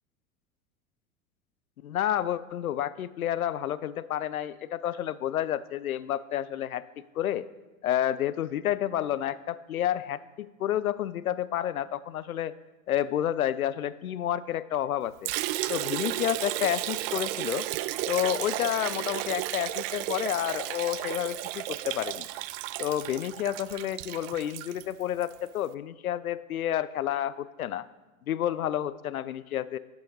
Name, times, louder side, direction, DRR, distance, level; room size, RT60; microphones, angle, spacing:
voice 1, 1.8-7.5 7.8-12.5 12.9-15.3 15.7-17.7 18.1-22.3 22.8-27.9 28.3-29.8, left 11 dB, 80° left, 17 dB, 0.6 m, -30 dB
Liquid, 15.2-25.3, right 16 dB, 40° right, 0.5 m, -33 dB
11.5 x 9.7 x 4.0 m, 1.1 s
figure-of-eight pair, 85°, 42 cm